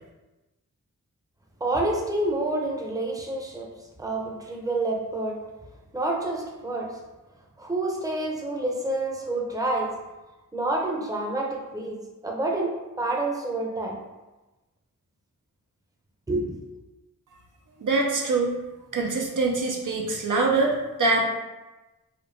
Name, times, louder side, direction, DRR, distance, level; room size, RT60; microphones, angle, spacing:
voice 1, 1.6-3.7 4.0-5.4 5.9-6.9 7.6-9.9 10.5-12.0 12.2-14.0 16.3-16.5, right 2 dB, 10° right, -1 dB, 0.6 m, -28 dB
voice 2, 17.8-18.5 18.9-21.2, right 3 dB, 65° right, 1 dB, 0.5 m, -24 dB
5.0 x 2.2 x 2.6 m, 1.1 s
wide cardioid pair, 75°, 33 cm